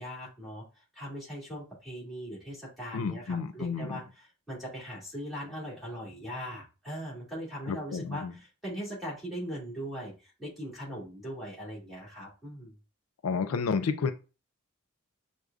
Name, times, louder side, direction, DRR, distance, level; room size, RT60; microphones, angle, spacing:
voice 1, 0.0-12.7, equal, ahead, -6 dB, 2.1 m, -40 dB
voice 2, 2.9-3.9 7.7-8.3 13.2-14.1, left 5 dB, 85° left, 9 dB, 0.4 m, -30 dB
6.3 x 2.4 x 2.3 m, 0.31 s
head